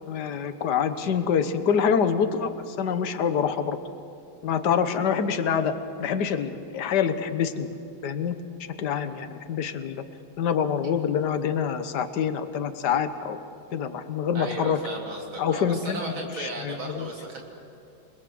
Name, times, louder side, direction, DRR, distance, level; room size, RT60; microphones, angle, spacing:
voice 1, 0.1-3.8 4.4-7.7 8.0-8.4 8.8-10.0 10.4-13.4 13.7-14.8 15.4-17.1, left 7 dB, 60° left, 9 dB, 1.7 m, -26 dB
voice 2, 14.3-17.4, right 2 dB, 90° right, 0 dB, 4.2 m, -35 dB
28.5 x 21.0 x 7.7 m, 2.7 s
omnidirectional pair, 2.1 m